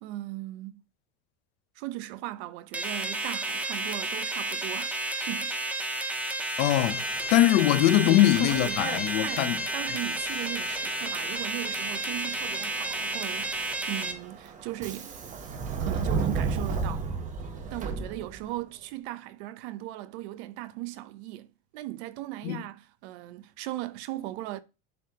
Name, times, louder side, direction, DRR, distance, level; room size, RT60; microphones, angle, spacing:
voice 1, 0.0-0.8 1.8-5.6 7.9-15.1 15.8-17.1 17.7-21.5 21.7-24.6, right 16 dB, 85° right, 0.7 m, -38 dB
sound 1, 2.7-14.1, right 1 dB, 5° right, 0.4 m, -31 dB
voice 2, 6.6-7.0 7.3-9.6 22.4-22.6, left 15 dB, 70° left, 0.7 m, -22 dB
Subway metro underground, 6.7-18.6, right 4 dB, 25° right, 0.8 m, -36 dB
10.5 x 3.6 x 2.8 m
cardioid pair, 175°, 32 cm